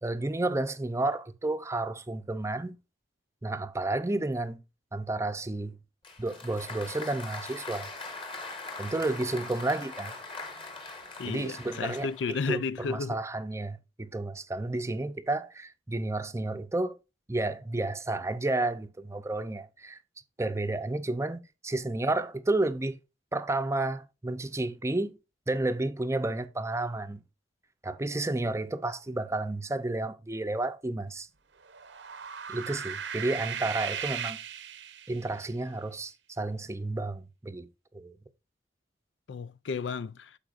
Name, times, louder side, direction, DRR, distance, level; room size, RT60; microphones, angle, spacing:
voice 1, 0.0-2.8 3.4-4.6 4.9-5.8 6.2-7.9 8.8-10.1 11.3-12.1 12.5-17.0 17.3-20.0 20.4-23.0 23.3-25.2 25.5-27.2 27.8-31.3 32.5-34.4 35.1-37.7 37.9-38.1, right 2 dB, 15° right, 0.6 m, -31 dB
Applause, 6.0-12.4, left 3 dB, 30° left, 1.5 m, -41 dB
voice 2, 11.2-13.2 39.3-40.4, left 5 dB, 75° left, 0.4 m, -33 dB
sound 1, 31.6-35.4, right 8 dB, 75° right, 0.8 m, -37 dB
12.0 x 4.5 x 2.5 m
head